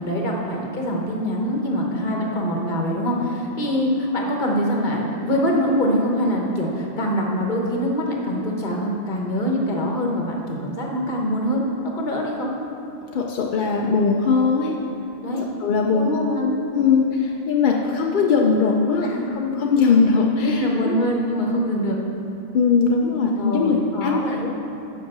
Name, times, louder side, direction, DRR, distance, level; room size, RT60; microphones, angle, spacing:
voice 1, 0.0-11.6 12.0-12.5 15.2-15.5 15.9-16.5 19.0-19.3 20.4-22.0 23.4-24.4, equal, 40° left, -1 dB, 1.2 m, -24 dB
voice 2, 13.1-14.8 15.6-16.1 16.4-21.0 22.5-24.5, left 5 dB, 55° left, 0 dB, 0.6 m, -20 dB
7.5 x 5.4 x 6.0 m, 2.9 s
omnidirectional pair, 1.4 m